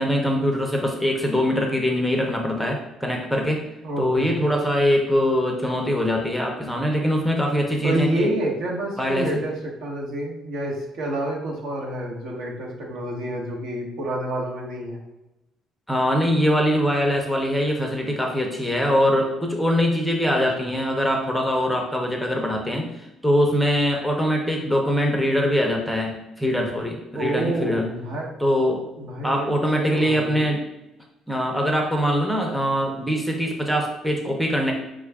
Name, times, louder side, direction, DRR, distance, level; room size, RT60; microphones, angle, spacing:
voice 1, 0.0-3.6 4.0-8.3 9.0-9.3 15.9-27.9 28.4-28.8 29.2-30.6 31.3-34.7, equal, ahead, 0 dB, 0.5 m, -23 dB
voice 2, 3.8-4.3 7.8-15.0 20.4-20.7 27.2-28.3 29.0-29.5 29.7-30.5, right 1 dB, 70° right, -1 dB, 1.1 m, -28 dB
5.2 x 2.3 x 3.4 m, 0.96 s
cardioid pair, 165°, 0 cm